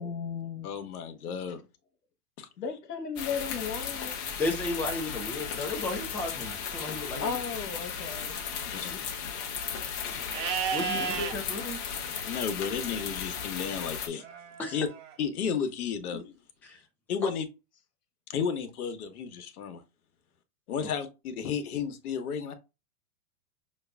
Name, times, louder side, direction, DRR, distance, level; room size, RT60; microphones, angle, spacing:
voice 1, 0.0-0.7 1.3-1.6 2.6-4.2 7.2-8.4 8.9-9.0 10.9-11.2, left 6 dB, 90° left, 1.1 m, -35 dB
voice 2, 0.6-1.6 2.4-2.5 8.7-8.8 12.2-14.2 14.7-14.9 15.2-16.3 17.1-17.5 18.3-19.8 20.7-22.5, left 6 dB, 70° left, 1.1 m, -32 dB
sound 1, 3.2-14.1, left 7 dB, 30° left, 0.9 m, -36 dB
voice 3, 4.4-7.3 10.7-11.8 14.6-14.8 16.6-16.8 17.2-17.3, left 2 dB, 5° left, 0.6 m, -33 dB
Livestock farm animals working animals, 10.3-11.3 14.2-15.1, right 7 dB, 50° right, 1.1 m, -33 dB
6.4 x 2.4 x 2.3 m
hypercardioid pair, 130°, 46 cm